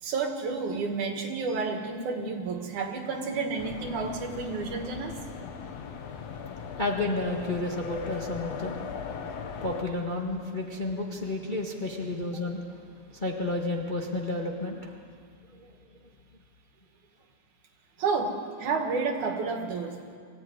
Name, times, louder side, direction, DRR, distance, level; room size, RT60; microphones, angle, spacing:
voice 1, 0.0-5.2 18.0-20.0, right 4 dB, 80° right, 4 dB, 3.5 m, -30 dB
sound 1, 3.6-9.8, left 6 dB, 65° left, 2.3 m, -39 dB
voice 2, 6.8-8.8 9.6-12.8 13.1-15.0, left 2 dB, 25° left, -1 dB, 1.2 m, -31 dB
24.5 x 15.0 x 9.7 m, 2.2 s
omnidirectional pair, 3.4 m